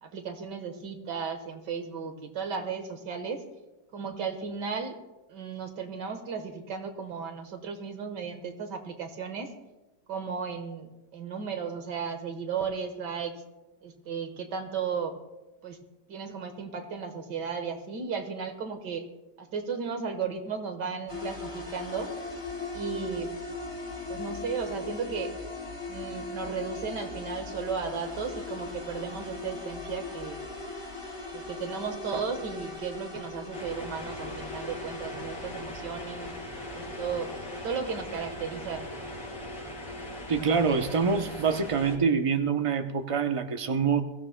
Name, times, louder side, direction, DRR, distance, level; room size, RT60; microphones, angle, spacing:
voice 1, 0.0-3.4 3.9-5.0 5.3-9.5 10.1-13.4 13.8-15.2 15.6-15.8 16.1-19.0 19.4-22.1 22.7-23.3 24.1-25.3 25.9-30.4 31.3-36.3 36.7-38.9, right 6 dB, 80° right, 6 dB, 1.9 m, -35 dB
sound 1, 21.1-39.7, left 3 dB, 20° left, 2.2 m, -39 dB
sound 2, 33.5-42.0, left 1 dB, 70° left, 4.4 m, -40 dB
voice 2, 40.3-44.0, right 5 dB, 50° right, 6 dB, 0.3 m, -25 dB
22.0 x 15.5 x 2.2 m, 1.1 s
omnidirectional pair, 1.8 m